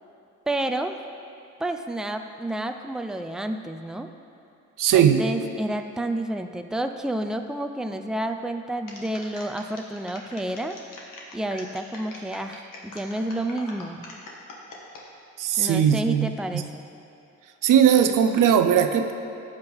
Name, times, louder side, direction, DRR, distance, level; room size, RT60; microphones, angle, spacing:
voice 1, 0.5-1.0 1.6-4.1 4.9-10.8 11.3-14.1 15.5-16.9, right 1 dB, ahead, 6 dB, 0.6 m, -30 dB
voice 2, 4.8-5.2 15.4-16.7 17.6-19.1, right 8 dB, 80° right, 8 dB, 0.7 m, -19 dB
sound 1, 8.9-15.0 15.5-15.9, left 2 dB, 75° left, 1.8 m, -43 dB
14.0 x 9.0 x 3.5 m, 2.8 s
cardioid pair, 70°, 32 cm